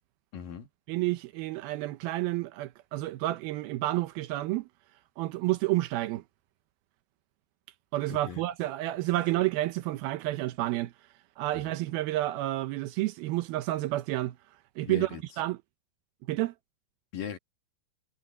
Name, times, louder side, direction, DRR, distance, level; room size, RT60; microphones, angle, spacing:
voice 1, 0.3-0.7 8.1-8.4 11.5-11.7 14.8-15.2 17.1-17.4, left 8 dB, 55° left, 3.4 m, -39 dB
voice 2, 0.9-4.7 5.2-6.2 7.9-10.9 11.4-14.4 14.8-15.1 15.4-15.6 16.3-16.5, right 17 dB, 85° right, 2.1 m, -30 dB
omnidirectional pair, 5.4 m